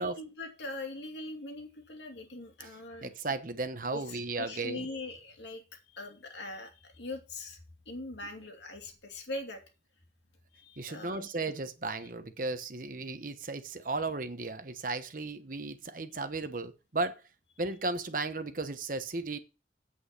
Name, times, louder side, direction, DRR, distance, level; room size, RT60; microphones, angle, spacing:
voice 1, 0.0-3.1 3.9-5.6 5.9-7.6 7.9-9.6 10.5-11.3, left 2 dB, 75° left, 2.7 m, -41 dB
voice 2, 3.0-4.9 10.8-17.2 17.6-19.4, right 3 dB, 50° right, 1.1 m, -35 dB
8.6 x 7.8 x 5.9 m
head